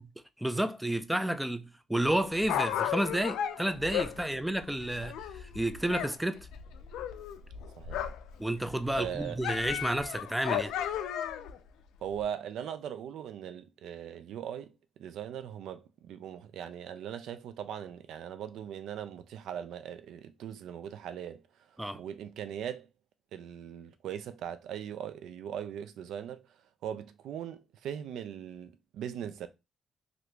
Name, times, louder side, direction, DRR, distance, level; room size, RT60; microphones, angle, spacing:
voice 1, 0.4-6.5 8.4-10.7 21.8-22.0, right 1 dB, 5° right, 0.4 m, -31 dB
Dog, 2.1-6.1 6.4-8.3 8.6-11.6 12.2-12.3, left 10 dB, 85° left, 0.3 m, -34 dB
voice 2, 8.9-9.4 12.0-14.7 15.0-21.4 21.9-22.9 23.3-26.5 26.8-29.5, right 9 dB, 80° right, 0.4 m, -40 dB
2.8 x 2.6 x 3.2 m
cardioid pair, 90°, 0 cm